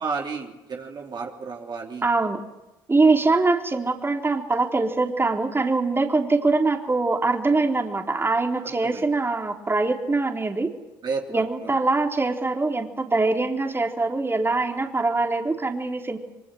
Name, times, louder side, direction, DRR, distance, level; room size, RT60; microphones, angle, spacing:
voice 1, 0.0-2.1 8.6-9.1 11.0-11.8, right 4 dB, 40° right, 0 dB, 3.3 m, -32 dB
voice 2, 2.0-2.4 2.9-10.7 11.3-16.2, right 3 dB, 20° right, 2 dB, 3.9 m, -23 dB
26.0 x 25.0 x 8.0 m, 0.99 s
hypercardioid pair, 50°, 11 cm